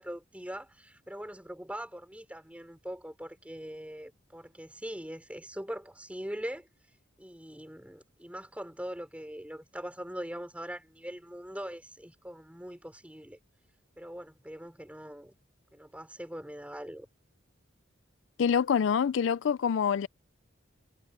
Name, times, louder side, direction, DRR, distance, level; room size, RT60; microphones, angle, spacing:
voice 1, 0.0-6.7 7.2-13.4 14.0-15.3 15.7-17.1, equal, 5° right, 4.5 m, -42 dB
voice 2, 18.4-20.1, left 7 dB, 70° left, 0.4 m, -26 dB
head